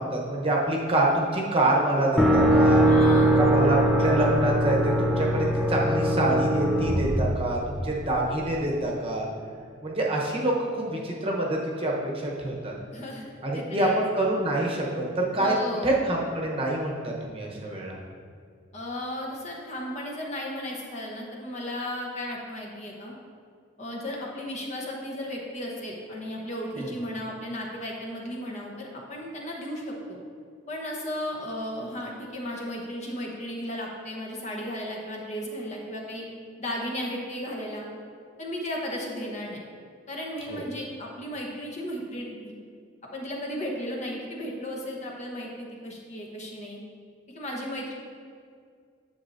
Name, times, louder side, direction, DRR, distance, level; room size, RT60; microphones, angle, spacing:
voice 1, 0.0-2.8 3.4-9.3 9.8-12.7 13.4-15.5 15.8-18.0 40.5-40.6, right 1 dB, 30° right, -2 dB, 1.0 m, -26 dB
sound 1, 2.2-8.1, right 1 dB, ahead, 0.4 m, -21 dB
voice 2, 2.9-3.4 12.9-13.3 13.5-14.0 15.4-15.9 18.7-23.1 23.8-30.2 30.7-36.3 36.6-37.9 38.4-39.6 40.1-42.6 43.1-46.8 47.3-47.9, equal, 35° left, -2 dB, 1.0 m, -35 dB
10.0 x 6.9 x 2.7 m, 2.2 s
head